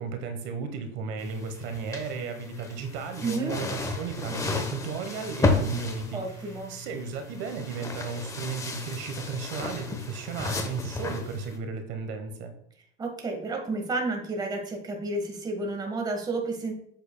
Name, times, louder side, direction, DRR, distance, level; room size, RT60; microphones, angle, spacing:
voice 1, 0.0-12.5, right 5 dB, 70° right, 6 dB, 1.1 m, -35 dB
sound 1, 1.2-11.6, left 3 dB, 15° left, 0.9 m, -33 dB
voice 2, 3.2-3.5 6.1-6.7 13.0-16.7, right 2 dB, 20° right, 2 dB, 1.4 m, -31 dB
7.9 x 6.9 x 2.2 m, 0.68 s
cardioid pair, 145°, 19 cm